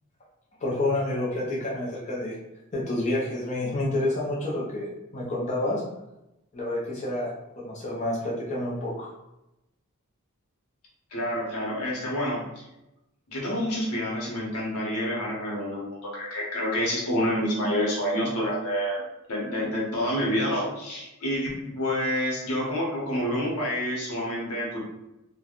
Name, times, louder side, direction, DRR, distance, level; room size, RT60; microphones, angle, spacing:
voice 1, 0.6-2.4 2.7-4.9 5.1-5.8 6.5-7.3 7.6-9.1, left 1 dB, 30° left, -6 dB, 0.5 m, -28 dB
voice 2, 11.1-12.7 13.3-19.0 19.3-24.8, equal, 80° left, -4 dB, 0.9 m, -28 dB
3.2 x 2.1 x 2.4 m, 0.92 s
head